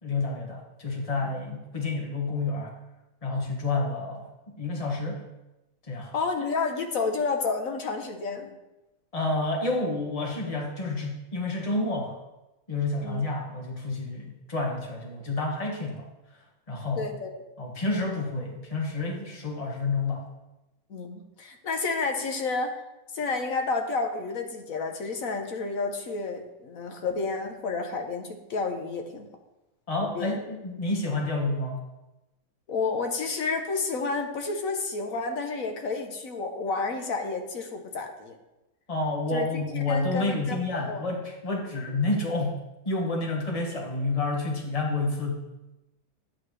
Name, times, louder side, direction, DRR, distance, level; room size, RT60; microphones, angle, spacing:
voice 1, 0.0-2.7 3.2-5.3 5.9-6.1 9.1-12.2 12.7-16.0 16.7-17.1 17.6-20.3 29.9-31.8 38.9-45.5, left 2 dB, 20° left, 0 dB, 1.4 m, -29 dB
voice 2, 6.1-8.6 13.0-13.2 17.0-17.3 20.9-22.7 23.1-29.3 30.0-30.4 32.7-38.4 39.3-41.1, left 4 dB, 50° left, 4 dB, 1.2 m, -30 dB
10.5 x 8.5 x 3.3 m, 1.0 s
omnidirectional pair, 2.1 m